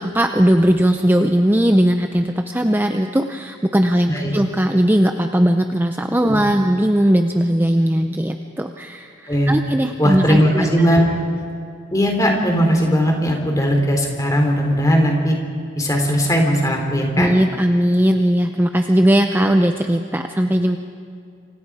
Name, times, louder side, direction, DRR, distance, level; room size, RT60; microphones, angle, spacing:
voice 1, 0.0-10.9 17.1-20.8, equal, 10° right, 6 dB, 0.6 m, -18 dB
voice 2, 10.0-11.1 11.9-15.4 15.7-17.3, equal, 15° left, 2 dB, 3.4 m, -18 dB
28.0 x 25.5 x 4.9 m, 2.4 s
head